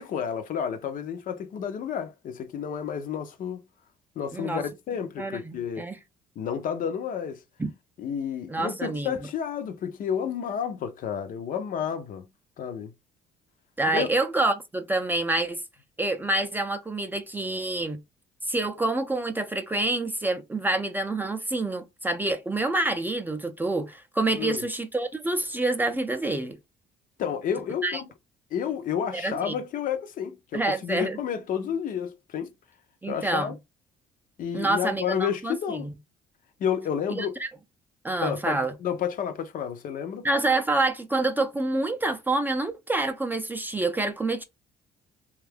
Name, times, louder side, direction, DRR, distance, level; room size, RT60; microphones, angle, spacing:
voice 1, 0.0-3.6 4.2-5.8 6.4-7.4 8.0-12.2 12.6-12.9 13.9-14.1 24.3-24.6 27.2-28.1 28.5-32.5 33.1-33.6 34.4-35.9 36.6-37.3 38.2-40.2, left 8 dB, 55° left, 0.5 m, -30 dB
voice 2, 4.3-4.6 5.2-6.0 7.6-7.7 8.5-9.2 13.8-15.6 16.0-18.0 18.5-26.6 27.8-28.0 29.1-29.5 30.5-31.2 33.0-33.5 34.5-36.0 37.1-37.5 38.0-38.7 40.2-44.4, right 2 dB, 10° right, 0.4 m, -27 dB
2.6 x 2.3 x 3.3 m
cardioid pair, 110°, 17 cm